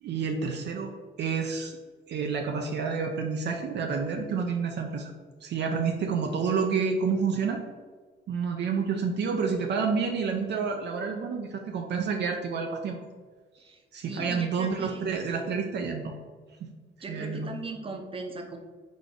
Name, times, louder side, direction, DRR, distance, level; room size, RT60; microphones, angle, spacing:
voice 1, 0.0-1.8 2.1-5.1 5.4-7.6 8.3-13.0 13.6-16.1 17.1-17.5, right 5 dB, 60° right, 2 dB, 0.5 m, -29 dB
voice 2, 13.7-15.1 17.0-18.6, right 3 dB, 25° right, 3 dB, 0.8 m, -38 dB
4.0 x 3.6 x 3.5 m, 1.4 s
cardioid pair, 90°, 20 cm